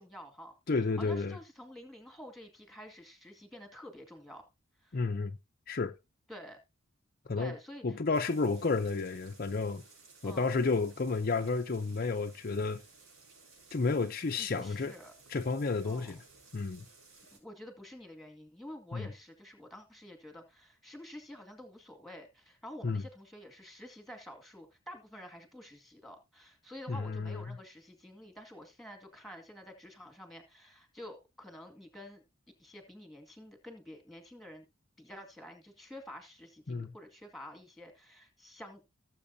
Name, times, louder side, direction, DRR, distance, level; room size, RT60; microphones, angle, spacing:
voice 1, 0.0-4.4 4.8-5.0 6.3-6.6 7.4-8.0 10.2-10.5 14.4-15.1 15.8-16.1 17.3-32.2 32.6-34.6 35.0-38.8, equal, ahead, 2.1 m, -49 dB
voice 2, 0.7-1.4 4.9-5.3 5.7-5.9 7.3-7.5 7.8-9.8 10.2-12.8 13.7-14.9 15.3-16.2 16.5-16.8 18.9-19.1 22.8-23.0 26.9-27.6 36.7-36.9, left 4 dB, 45° left, 0.6 m, -31 dB
sound 1, 8.1-17.4, right 3 dB, 80° right, 6.0 m, -58 dB
17.5 x 7.5 x 2.8 m
head